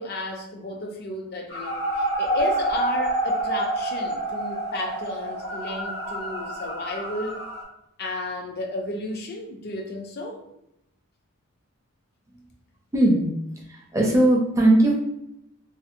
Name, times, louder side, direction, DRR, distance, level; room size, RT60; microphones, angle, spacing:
voice 1, 0.0-7.4 8.0-10.4, left 1 dB, 45° left, 3 dB, 0.4 m, -32 dB
sound 1, 1.5-7.6, right 1 dB, 70° left, 1.1 m, -28 dB
voice 2, 12.9-13.3 13.7-14.9, right 1 dB, 15° right, -2 dB, 0.4 m, -19 dB
2.6 x 2.0 x 2.5 m, 0.81 s
head